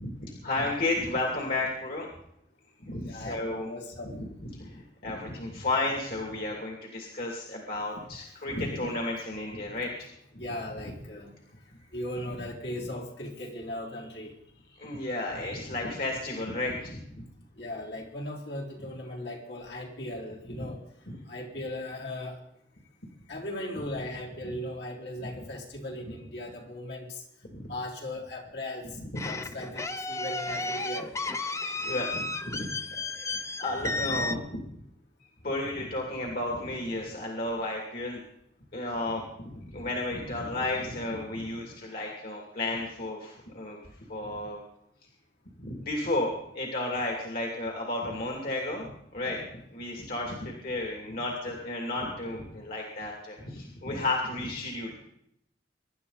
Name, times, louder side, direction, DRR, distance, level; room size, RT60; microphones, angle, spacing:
voice 1, 0.0-2.1 2.8-3.7 4.0-4.2 4.5-10.1 10.3-10.4 14.8-17.2 20.5-20.7 21.1-21.2 27.5-27.7 29.0-29.2 31.8-34.8 35.2-38.2 38.7-44.6 45.6-55.0, left 2 dB, 60° left, 0 dB, 2.7 m, -33 dB
voice 2, 3.1-4.1 10.4-11.3 11.9-14.3 17.6-20.8 21.3-22.4 23.3-27.2 27.7-28.9 29.2-31.2 39.7-39.8, left 1 dB, 75° left, -3 dB, 4.1 m, -38 dB
sound 1, 29.2-34.4, left 3 dB, 15° left, 0.7 m, -33 dB
24.0 x 11.5 x 4.1 m, 0.77 s
head